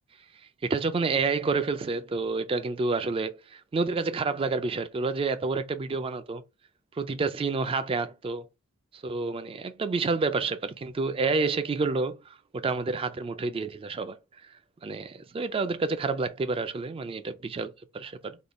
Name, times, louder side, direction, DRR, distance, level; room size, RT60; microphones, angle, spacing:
voice 1, 0.6-6.4 7.0-8.5 8.9-14.2 14.8-18.4, right 4 dB, 25° right, 0.3 m, -29 dB
3.6 x 2.2 x 3.6 m
head